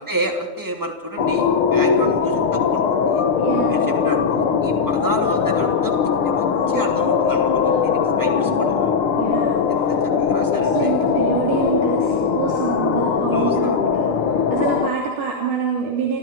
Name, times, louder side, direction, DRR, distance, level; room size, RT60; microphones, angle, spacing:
voice 1, 0.0-3.3 3.7-6.0 6.2-8.9 9.7-11.0 13.3-13.8, right 1 dB, 5° right, 3 dB, 2.2 m, -30 dB
sound 1, 1.2-14.9, left 6 dB, 65° left, 1.3 m, -20 dB
voice 2, 3.4-3.8 9.2-10.0 10.7-16.2, right 5 dB, 55° right, -2 dB, 4.2 m, -26 dB
29.5 x 24.0 x 4.6 m, 1.1 s
omnidirectional pair, 4.4 m